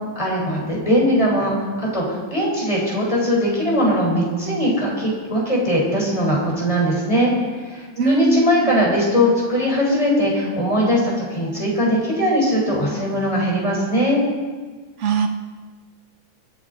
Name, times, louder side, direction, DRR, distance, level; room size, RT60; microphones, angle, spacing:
voice 1, 0.2-7.3 7.7-14.2, equal, 15° left, -4 dB, 4.2 m, -20 dB
voice 2, 8.0-8.7 15.0-15.3, right 4 dB, 85° right, 6 dB, 0.6 m, -20 dB
24.0 x 8.7 x 4.0 m, 1.4 s
omnidirectional pair, 2.1 m